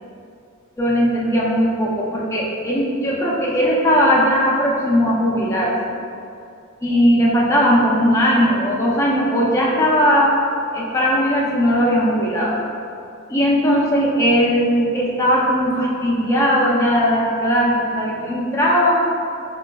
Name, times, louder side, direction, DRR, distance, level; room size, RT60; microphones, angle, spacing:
voice 1, 0.8-6.0 6.8-10.4 10.7-12.6 13.3-18.9, equal, 15° left, -5 dB, 0.5 m, -18 dB
5.2 x 3.0 x 2.2 m, 2.5 s
head